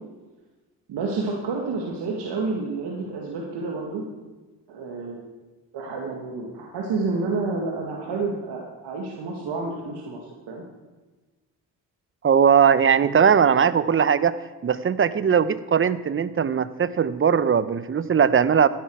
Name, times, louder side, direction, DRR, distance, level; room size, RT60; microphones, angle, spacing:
voice 1, 0.9-4.0 4.7-5.2 5.7-10.6, right 3 dB, 70° right, -1 dB, 2.1 m, -29 dB
voice 2, 12.2-18.7, right 7 dB, 30° right, 15 dB, 0.7 m, -19 dB
14.0 x 10.5 x 4.8 m, 1.2 s
supercardioid pair, 70°, 42 cm